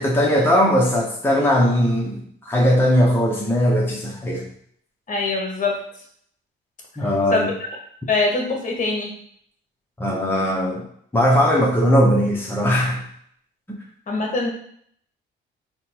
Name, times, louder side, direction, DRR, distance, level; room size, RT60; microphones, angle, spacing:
voice 1, 0.0-4.5 7.0-7.5 10.0-10.8 11.1-13.0, equal, 10° left, -3 dB, 0.9 m, -19 dB
voice 2, 5.1-5.8 7.3-7.5 8.1-9.1 14.1-14.5, left 3 dB, 40° left, 0 dB, 1.2 m, -23 dB
3.6 x 2.3 x 4.4 m, 0.65 s
cardioid pair, 90°, 20 cm